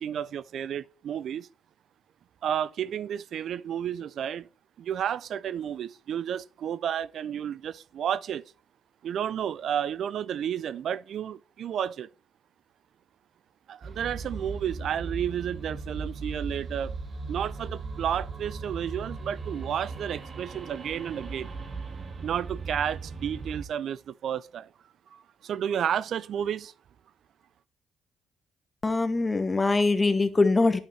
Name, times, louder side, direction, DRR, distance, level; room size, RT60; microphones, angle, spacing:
voice 1, 0.0-1.5 2.4-4.5 4.8-8.4 9.0-12.1 13.7-16.9 17.3-21.5 22.2-24.7 25.1-26.7, right 9 dB, 70° right, 0.3 m, -31 dB
sound 1, 13.8-23.6, right 4 dB, 50° right, 1.3 m, -38 dB
voice 2, 28.8-30.8, left 3 dB, 25° left, 0.9 m, -23 dB
9.3 x 5.7 x 3.2 m
supercardioid pair, 65°, 0 cm